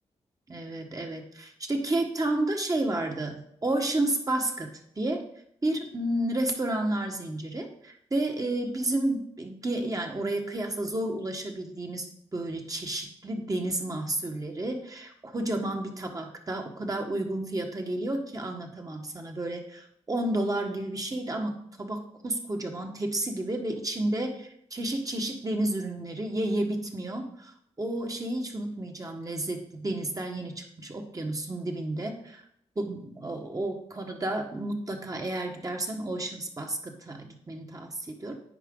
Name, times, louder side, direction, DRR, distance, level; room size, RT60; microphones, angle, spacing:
voice 1, 0.5-5.2 5.6-12.1 12.3-27.5 27.8-32.4 32.8-38.4, right 1 dB, 30° right, 3 dB, 1.6 m, -31 dB
10.0 x 4.7 x 3.9 m, 0.69 s
cardioid pair, 50°, 11 cm